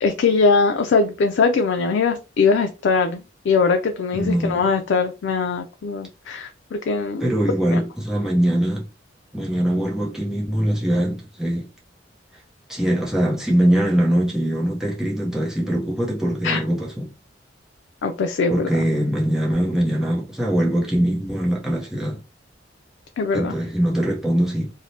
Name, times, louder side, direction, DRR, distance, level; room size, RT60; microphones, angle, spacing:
voice 1, 0.0-7.2 7.7-7.8 16.4-16.6 18.0-18.7 23.2-23.5, left 4 dB, 75° left, 0.4 m, -21 dB
voice 2, 4.1-4.7 7.2-8.9 9.3-11.7 12.7-17.1 18.5-22.2 23.3-24.7, right 1 dB, 5° right, 0.7 m, -22 dB
2.7 x 2.1 x 3.1 m
head